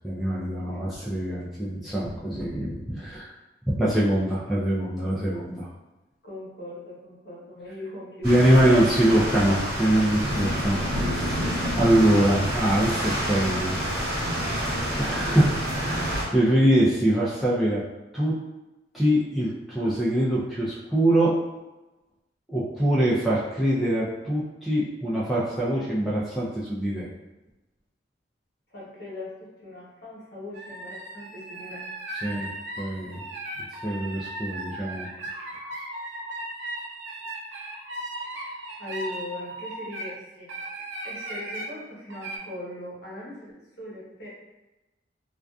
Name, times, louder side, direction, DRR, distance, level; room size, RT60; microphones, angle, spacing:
voice 1, 0.0-3.3 3.8-5.7 8.2-13.8 14.2-14.6 15.0-17.8 18.1-18.3 18.9-21.3 22.5-27.1 32.2-32.5 32.8-33.2 33.8-35.1 35.3-35.4, right 1 dB, ahead, -9 dB, 0.3 m, -24 dB
voice 2, 6.2-8.5 28.7-31.8 32.1-32.4 38.3-40.5 40.8-44.3, left 1 dB, 60° left, -6 dB, 0.9 m, -40 dB
sound 1, 8.2-16.2, equal, 55° right, 1.0 m, -28 dB
sound 2, 30.5-40.1 40.5-41.7 42.1-42.4, right 1 dB, 75° right, 0.4 m, -37 dB
2.5 x 2.3 x 2.2 m, 1.1 s
head